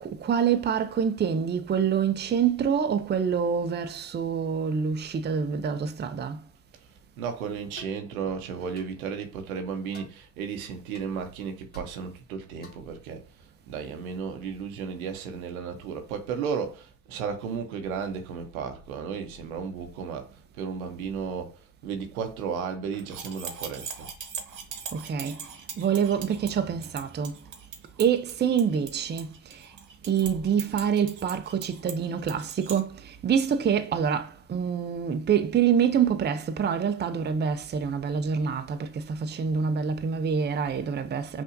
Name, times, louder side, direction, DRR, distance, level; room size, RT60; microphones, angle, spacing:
voice 1, 0.0-6.4 24.9-25.5 25.8-27.4 28.0-29.7 30.0-41.4, right 7 dB, 25° right, 0.5 m, -26 dB
voice 2, 7.2-13.3 13.7-24.1, right 6 dB, 90° right, 0.8 m, -34 dB
sound 1, 7.8-8.0 8.8-9.0 9.9-10.1 10.9-11.1 11.7-11.9 12.6-12.9, left 3 dB, 20° left, 1.5 m, -50 dB
sound 2, 23.0-32.8, right 7 dB, 45° right, 1.0 m, -41 dB
5.6 x 2.7 x 2.6 m
hypercardioid pair, 60°, 41 cm